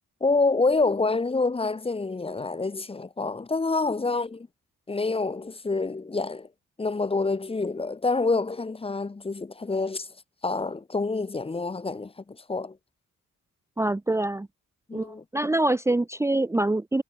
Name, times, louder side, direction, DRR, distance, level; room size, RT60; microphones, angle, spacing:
voice 1, 0.2-4.5 4.9-6.5 6.8-10.1 10.4-12.8 14.9-15.2, left 3 dB, 15° left, 1.1 m, -27 dB
voice 2, 13.8-14.5 14.9-15.1 15.3-17.0, right 2 dB, 10° right, 0.8 m, -24 dB
cardioid pair, 150°, 32 cm